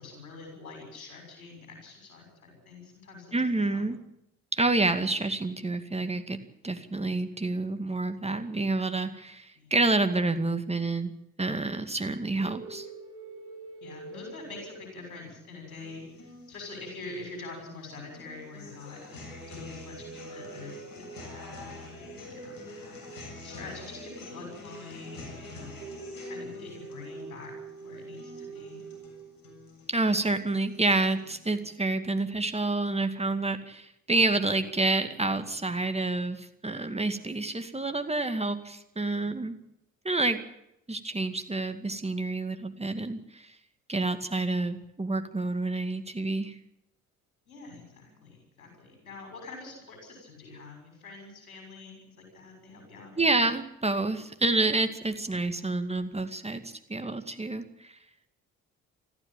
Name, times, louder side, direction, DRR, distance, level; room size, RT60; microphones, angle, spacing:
voice 1, 0.0-3.9 9.6-9.7 13.8-19.0 19.5-22.8 23.4-25.7 26.2-27.5 27.8-28.8 39.2-39.3 47.5-53.4, left 3 dB, 85° left, 3 dB, 6.8 m, -45 dB
voice 2, 3.3-4.0 4.5-6.4 6.6-11.1 11.4-12.9 29.9-39.6 40.0-40.4 40.9-43.5 43.9-46.5 53.2-57.9, right 2 dB, 15° right, 7 dB, 2.2 m, -28 dB
sound 1, 12.4-15.6 19.1-21.7 25.8-29.6, right 3 dB, 80° right, 4.4 m, -45 dB
sound 2, 15.7-31.7, left 1 dB, 55° left, 7.6 m, -46 dB
21.5 x 14.0 x 9.1 m, 0.82 s
figure-of-eight pair, 50°, 41 cm